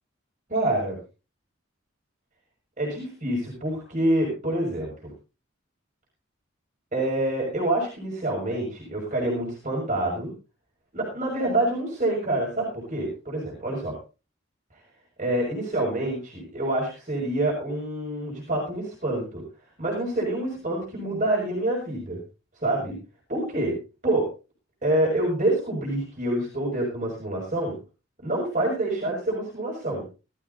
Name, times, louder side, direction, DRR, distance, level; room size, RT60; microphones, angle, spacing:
voice 1, 0.5-1.0 2.8-5.1 6.9-10.3 10.9-13.9 15.2-19.4 19.8-22.2 22.6-23.0 23.3-23.7 24.0-24.3 24.8-27.7 28.2-30.0, right 1 dB, 40° right, -3 dB, 6.1 m, -27 dB
19.5 x 13.5 x 2.7 m, 0.33 s
head